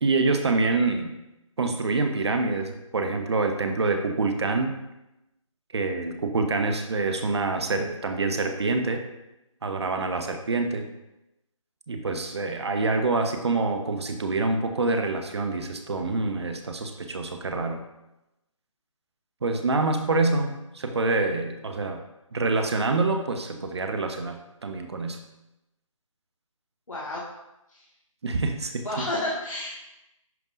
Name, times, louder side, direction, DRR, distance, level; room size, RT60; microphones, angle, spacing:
voice 1, 0.0-1.1 1.6-4.7 5.7-9.0 9.6-10.9 11.9-17.8 19.4-22.0 22.3-25.2 28.2-29.1, right 3 dB, 50° right, 5 dB, 0.9 m, -26 dB
voice 2, 26.9-27.2 27.7-27.8 28.8-29.7, left 1 dB, 70° left, -5 dB, 1.8 m, -30 dB
10.5 x 5.3 x 2.6 m, 0.93 s
figure-of-eight pair, 155°, 17 cm